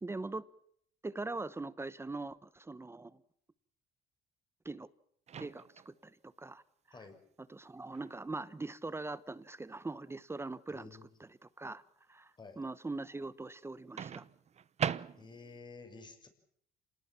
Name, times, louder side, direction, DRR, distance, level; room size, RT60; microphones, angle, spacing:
voice 1, 0.0-0.5 1.0-3.2 4.6-4.9 5.4-6.6 7.5-10.9 11.2-11.3 11.6-11.8 12.1-14.2, right 3 dB, 15° right, 17 dB, 1.0 m, -41 dB
Microwave oven, 5.3-6.0 7.9-8.2 14.0-15.6, right 8 dB, 40° right, 0.9 m, -39 dB
voice 2, 10.7-11.0 12.4-12.6 15.2-16.3, left 4 dB, 25° left, 7 dB, 6.5 m, -51 dB
27.5 x 19.5 x 7.5 m, 0.67 s
cardioid pair, 110°, 17 cm